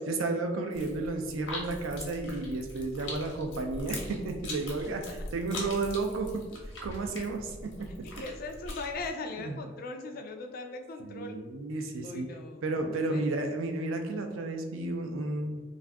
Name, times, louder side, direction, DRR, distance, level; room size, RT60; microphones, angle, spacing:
voice 1, 0.0-6.3 6.8-8.1 9.4-9.6 11.0-12.3 12.6-15.6, right 2 dB, 85° right, 4 dB, 0.4 m, -32 dB
sound 1, 0.7-9.1, left 1 dB, 75° left, 0.8 m, -42 dB
voice 2, 8.2-11.4 12.0-12.6 13.1-13.2, left 3 dB, 50° left, 5 dB, 0.4 m, -39 dB
2.5 x 2.4 x 3.4 m, 1.3 s
head